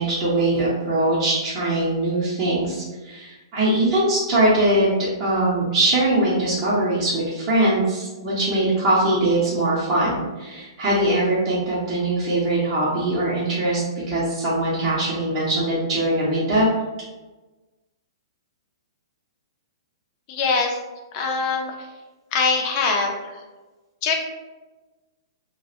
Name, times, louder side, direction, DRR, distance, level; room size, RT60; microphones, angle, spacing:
voice 1, 0.0-16.7, right 1 dB, 20° right, -10 dB, 0.6 m, -21 dB
voice 2, 20.3-20.8 21.1-21.7 22.3-23.1 24.0-24.1, left 4 dB, 30° left, 2 dB, 0.4 m, -22 dB
2.7 x 2.0 x 2.4 m, 1.2 s
hypercardioid pair, 155°, 3 cm